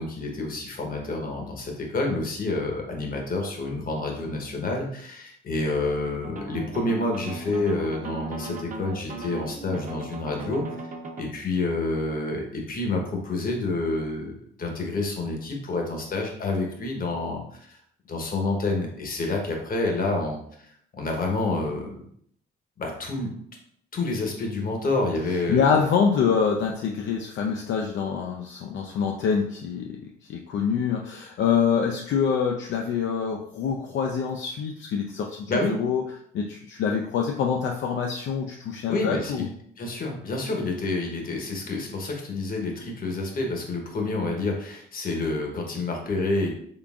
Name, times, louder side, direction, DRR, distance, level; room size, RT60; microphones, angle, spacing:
voice 1, 0.0-10.6 11.2-17.4 17.7-17.8 18.1-21.9 22.8-23.3 23.9-25.7 35.5-35.8 38.9-39.5 39.8-46.5, left 2 dB, 45° left, 1 dB, 1.0 m, -28 dB
sound 1, 6.2-11.2, right 2 dB, 40° right, 0.6 m, -37 dB
voice 2, 25.5-36.0 36.3-39.5, left 6 dB, 70° left, 1 dB, 0.4 m, -25 dB
3.8 x 3.4 x 2.4 m, 0.66 s
cardioid pair, 90°, 20 cm